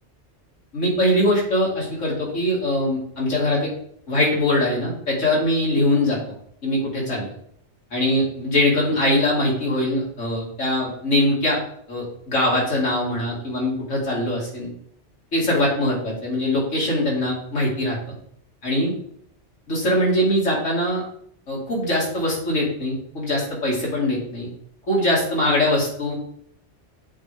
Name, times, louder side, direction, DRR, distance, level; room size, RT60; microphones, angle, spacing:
voice 1, 0.7-3.7 4.1-6.2 6.6-7.3 7.9-11.6 11.9-14.7 15.3-18.1 18.6-18.9 19.7-21.0 21.5-24.5 24.9-26.2, left 1 dB, 85° left, -4 dB, 2.7 m, -22 dB
8.4 x 4.1 x 3.6 m, 0.66 s
omnidirectional pair, 1.2 m